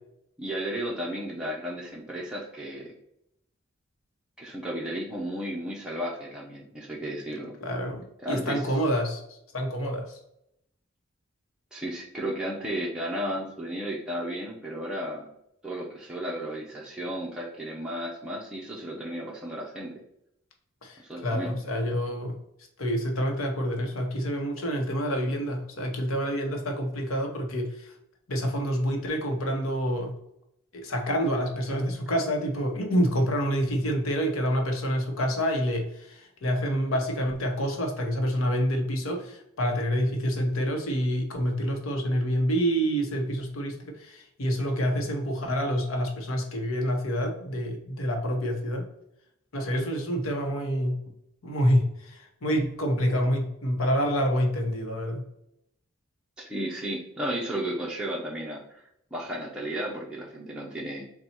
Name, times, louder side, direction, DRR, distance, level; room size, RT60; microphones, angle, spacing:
voice 1, 0.4-2.9 4.4-7.5 8.2-8.6 11.7-15.3 15.6-19.9 21.0-21.5 56.4-61.0, equal, 5° right, -4 dB, 0.6 m, -34 dB
voice 2, 7.6-10.2 20.8-22.4 22.8-27.9 28.3-30.1 30.7-48.8 49.5-51.0 51.4-55.2, equal, 90° left, 2 dB, 0.9 m, -27 dB
4.0 x 2.3 x 4.2 m, 0.78 s
head